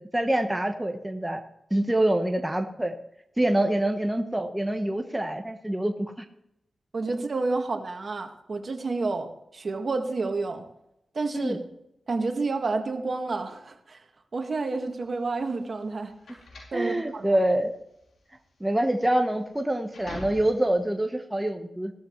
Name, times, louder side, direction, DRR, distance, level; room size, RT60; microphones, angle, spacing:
voice 1, 0.0-1.4 1.7-2.9 3.4-6.2 11.3-11.6 16.7-17.7 18.6-21.9, right 1 dB, 10° right, 5 dB, 1.2 m, -26 dB
voice 2, 6.9-10.6 11.1-11.6 12.1-14.0 14.3-16.1 16.7-17.3, right 3 dB, 55° right, 5 dB, 1.8 m, -29 dB
sound 1, 14.9-20.8, left 1 dB, 85° left, 4.2 m, -45 dB
16.5 x 13.0 x 3.2 m, 0.82 s
cardioid pair, 65°, 0 cm